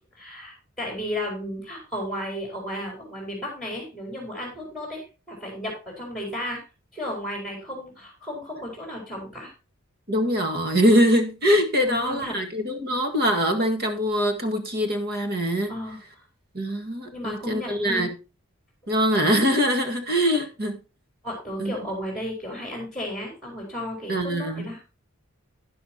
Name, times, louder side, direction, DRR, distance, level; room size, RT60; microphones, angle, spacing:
voice 1, 0.1-6.6 6.9-9.5 11.7-12.3 15.7-16.2 17.1-18.1 20.3-20.4 21.2-24.8, left 1 dB, ahead, 4.5 m, -34 dB
voice 2, 10.1-15.7 16.5-18.1 18.9-20.8 21.6-21.7 24.1-24.7, equal, 50° right, 2.0 m, -23 dB
11.5 x 10.5 x 2.9 m
head